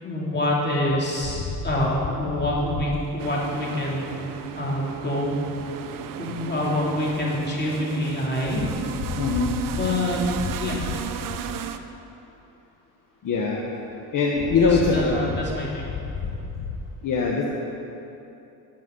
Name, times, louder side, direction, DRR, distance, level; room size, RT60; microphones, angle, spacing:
voice 1, 0.0-4.1 4.6-5.4 6.2-8.7 9.7-10.2 10.6-10.9 14.5-15.8, left 1 dB, 25° left, -4 dB, 2.9 m, -26 dB
sound 1, 3.2-11.8, right 9 dB, 55° right, 0.7 m, -34 dB
voice 2, 9.1-9.5 13.2-13.6 14.1-15.2 17.0-17.5, left 4 dB, 50° left, -2 dB, 1.2 m, -21 dB
17.5 x 7.3 x 3.9 m, 2.9 s
cardioid pair, 85°, 40 cm